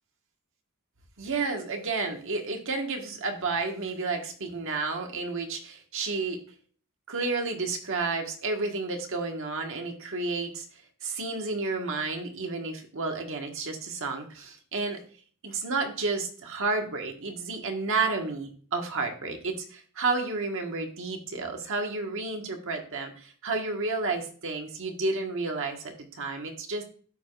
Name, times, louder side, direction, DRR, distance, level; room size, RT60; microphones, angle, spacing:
voice 1, 1.2-6.4 7.1-10.7 11.0-15.0 15.4-26.8, right 3 dB, 65° right, 3 dB, 1.4 m, -31 dB
13.5 x 4.9 x 2.4 m, 0.44 s
head